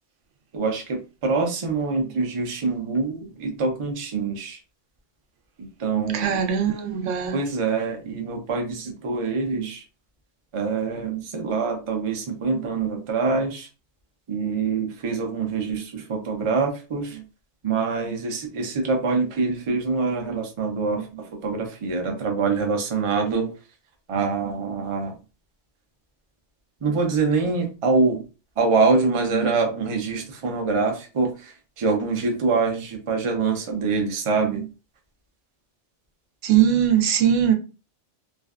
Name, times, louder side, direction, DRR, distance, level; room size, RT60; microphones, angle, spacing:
voice 1, 0.5-4.6 5.6-6.4 7.3-9.8 10.5-13.7 14.3-17.2 17.6-23.5 24.1-25.2 26.8-28.2 28.6-34.7, right 4 dB, 45° right, 0.4 m, -25 dB
voice 2, 6.1-7.4 36.4-37.5, right 9 dB, 80° right, 0.9 m, -20 dB
2.5 x 2.1 x 2.3 m
omnidirectional pair, 1.3 m